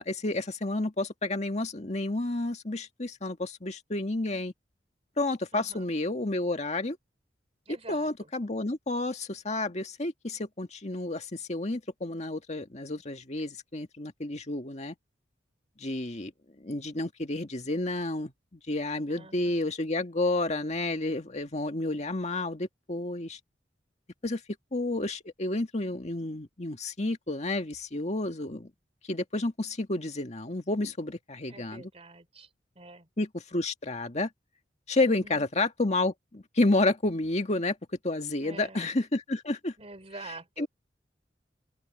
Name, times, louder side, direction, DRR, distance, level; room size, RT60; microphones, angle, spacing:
voice 1, 0.0-4.5 5.2-7.0 7.9-15.0 15.8-16.3 16.6-23.4 24.2-24.4 24.7-28.7 29.0-31.9 33.2-34.3 34.9-37.8 38.0-39.7 40.6-40.7, left 2 dB, 40° left, 1.9 m, -30 dB
voice 2, 5.5-5.9 7.7-8.3 19.1-19.7 31.5-32.5 32.8-33.1 35.0-35.5 38.4-38.8 39.8-40.7, right 3 dB, 35° right, 3.7 m, -47 dB
open air
head